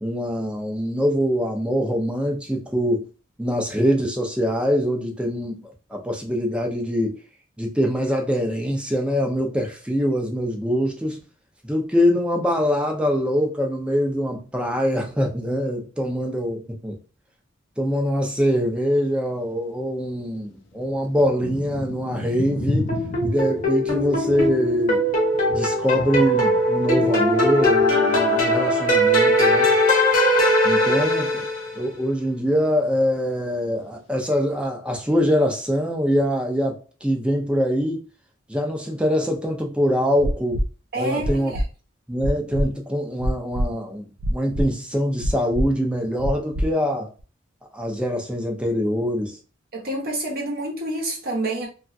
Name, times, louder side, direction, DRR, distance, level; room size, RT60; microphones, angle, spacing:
voice 1, 0.0-3.0 3.4-7.2 7.6-11.2 11.6-17.0 17.8-22.9 23.2-25.0 25.5-29.7 30.6-31.4 31.7-38.0 38.5-40.6 41.0-41.5 42.1-47.1 47.7-49.4, equal, 5° right, 0.6 m, -23 dB
Thunder / Rain, 19.7-19.8 20.4-30.0 30.3-31.1 31.7-32.0 32.3-33.1 33.7-33.8, left 2 dB, 65° left, 0.6 m, -35 dB
sound 1, 22.9-31.8, equal, 40° left, 1.0 m, -20 dB
sound 2, 40.2-40.6 41.2-41.6 42.2-42.6 43.2-43.7 44.2-44.7 45.2-45.7 46.2-46.7 47.2-47.3, equal, 75° right, 0.5 m, -23 dB
voice 2, 40.9-41.6 49.7-51.7, right 1 dB, 50° right, 0.9 m, -28 dB
2.9 x 2.3 x 2.6 m
head